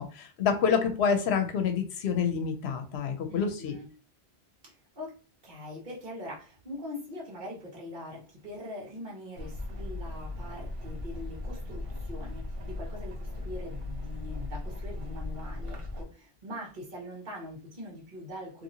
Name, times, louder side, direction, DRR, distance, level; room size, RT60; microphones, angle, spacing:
voice 1, 0.0-3.8, left 6 dB, 85° left, 6 dB, 0.9 m, -27 dB
voice 2, 3.3-3.9 5.0-5.1 5.4-18.6, left 1 dB, 50° right, -4 dB, 1.3 m, -42 dB
sound 1, 9.3-16.0, left 2 dB, 70° right, 0.9 m, -38 dB
2.8 x 2.8 x 2.7 m, 0.37 s
omnidirectional pair, 1.1 m